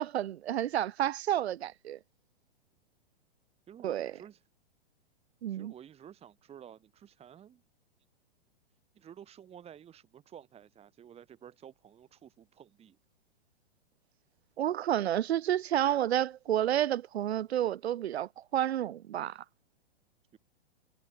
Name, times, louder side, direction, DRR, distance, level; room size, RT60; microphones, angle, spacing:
voice 1, 0.0-2.0 3.8-4.1 5.4-5.7 14.6-19.4, right 11 dB, 85° right, 0.5 m, -30 dB
voice 2, 3.7-4.4 5.5-7.6 9.0-13.0 20.3-20.4, right 9 dB, 20° right, 2.0 m, -52 dB
hypercardioid pair, 120°, 31 cm